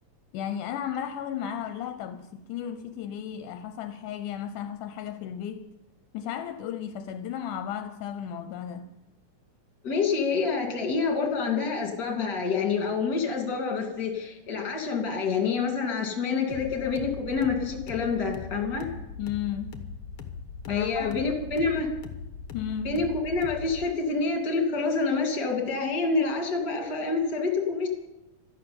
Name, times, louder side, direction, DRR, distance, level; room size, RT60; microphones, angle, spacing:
voice 1, 0.3-5.7 6.1-8.9 19.2-19.8 20.7-21.2 22.5-23.0, left 9 dB, 80° left, 2.2 m, -34 dB
voice 2, 9.8-18.9 20.7-21.9 22.8-27.9, left 4 dB, 35° left, 3.0 m, -27 dB
sound 1, 16.5-23.9, left 6 dB, 55° left, 1.7 m, -40 dB
13.0 x 11.5 x 8.7 m
omnidirectional pair, 3.7 m